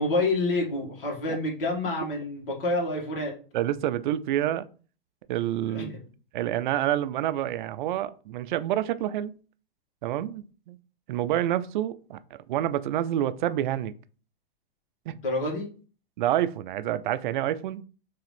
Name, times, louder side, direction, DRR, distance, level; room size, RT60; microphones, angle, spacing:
voice 1, 0.0-3.3 5.7-6.1 15.2-15.7, left 2 dB, 65° left, 2.0 m, -28 dB
voice 2, 3.5-4.7 5.3-5.9 6.3-9.3 10.0-10.8 11.1-13.9 15.1-15.2 16.2-17.8, right 12 dB, 55° right, 0.4 m, -28 dB
4.7 x 3.1 x 3.3 m
hypercardioid pair, 105°, 30 cm